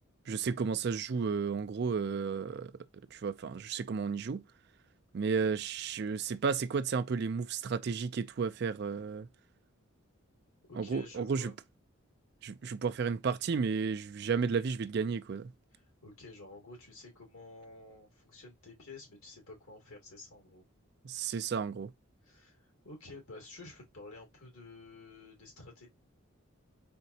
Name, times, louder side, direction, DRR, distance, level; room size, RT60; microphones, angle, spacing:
voice 1, 0.3-2.7 3.1-4.4 5.1-9.3 10.8-11.5 12.4-15.5 21.0-21.9, right 5 dB, 50° right, 0.3 m, -33 dB
voice 2, 10.7-11.6 15.7-20.7 22.2-25.9, left 3 dB, 85° left, 2.7 m, -51 dB
4.3 x 3.9 x 2.7 m
head